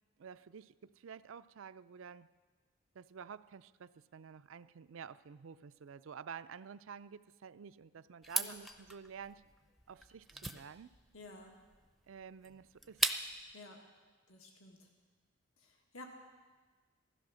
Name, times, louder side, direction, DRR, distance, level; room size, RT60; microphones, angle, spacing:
voice 1, 0.2-2.3 2.9-9.4 9.9-10.9 12.1-13.1, right 6 dB, 70° right, 15 dB, 0.4 m, -50 dB
sound 1, 8.2-13.5, right 1 dB, ahead, 0.5 m, -39 dB
voice 2, 11.1-11.5 13.5-13.8 14.3-14.8 15.6-16.1, left 2 dB, 85° left, 1 dB, 1.8 m, -52 dB
15.5 x 13.5 x 6.3 m, 1.4 s
head